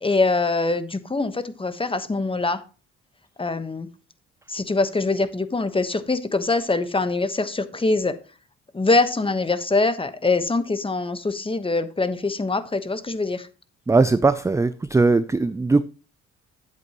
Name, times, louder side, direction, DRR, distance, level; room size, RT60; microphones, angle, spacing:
voice 1, 0.0-2.6 3.4-3.9 4.5-8.1 8.7-13.5, left 3 dB, 20° left, 12 dB, 1.1 m, -23 dB
voice 2, 13.9-15.8, right 3 dB, 10° right, 14 dB, 0.4 m, -19 dB
11.0 x 8.2 x 3.0 m, 0.34 s
cardioid pair, 90°, 30 cm